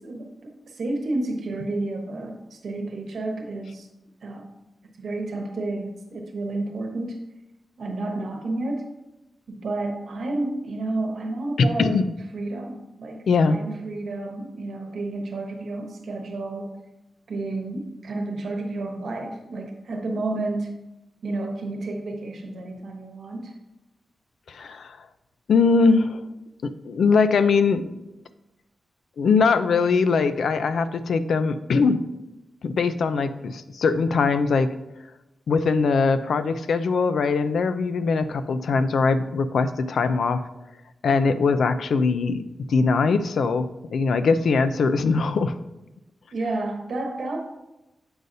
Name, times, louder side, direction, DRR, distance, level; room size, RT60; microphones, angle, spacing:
voice 1, 0.0-3.9 4.2-4.5 5.0-7.2 7.8-8.9 9.5-12.0 12.3-16.7 17.3-20.8 21.2-23.5 46.3-47.4, right 2 dB, 65° right, 2 dB, 1.0 m, -31 dB
voice 2, 11.6-12.0 13.3-13.6 24.5-25.0 25.5-26.2 26.6-28.0 29.2-32.1 32.6-34.7 35.5-40.4 41.0-45.6, left 4 dB, 80° left, 11 dB, 0.4 m, -21 dB
7.8 x 5.3 x 2.7 m, 0.96 s
wide cardioid pair, 180°, 0 cm